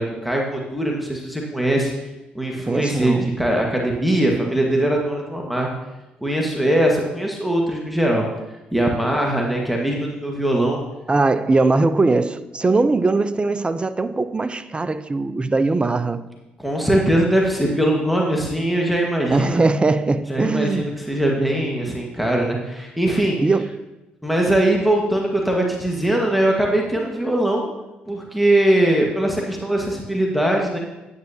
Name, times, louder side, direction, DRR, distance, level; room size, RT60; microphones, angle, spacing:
voice 1, 0.0-1.9 2.3-5.7 6.2-8.2 8.7-10.8 16.6-19.7 20.3-23.4 24.2-27.7 28.1-30.8, right 1 dB, ahead, 1.6 m, -21 dB
voice 2, 2.7-3.3 11.1-16.2 19.3-21.0 23.4-23.7, right 3 dB, 25° right, 0.6 m, -20 dB
9.5 x 9.0 x 2.8 m
hypercardioid pair, 50°, 4 cm